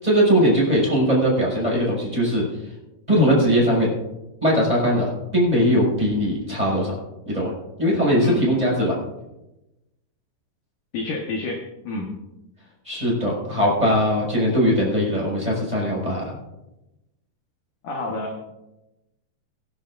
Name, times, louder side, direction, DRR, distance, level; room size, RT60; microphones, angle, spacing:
voice 1, 0.0-2.4 3.1-3.9 4.4-6.9 7.2-7.5 7.8-8.9 12.8-16.4, equal, 10° right, -5 dB, 5.9 m, -20 dB
voice 2, 10.9-12.1 17.8-18.5, left 2 dB, 60° left, 0 dB, 2.4 m, -29 dB
24.0 x 11.5 x 2.6 m, 0.96 s
omnidirectional pair, 5.0 m